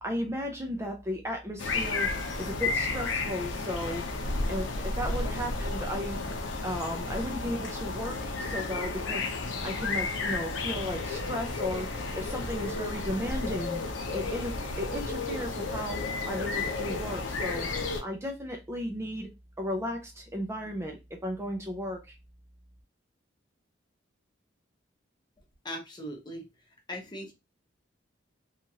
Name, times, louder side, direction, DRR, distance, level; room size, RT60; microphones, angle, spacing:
voice 1, 0.0-2.1 2.4-4.0 4.5-6.2 6.6-9.3 9.6-11.9 12.1-13.8 14.1-17.7 18.0-19.3 19.6-22.1, equal, 15° right, 2 dB, 0.4 m, -35 dB
sound 1, 1.6-18.0, left 3 dB, 85° left, 0.6 m, -32 dB
voice 2, 25.6-26.5 26.9-27.3, equal, 25° left, 1 dB, 0.8 m, -39 dB
3.0 x 2.4 x 2.7 m, 0.24 s
head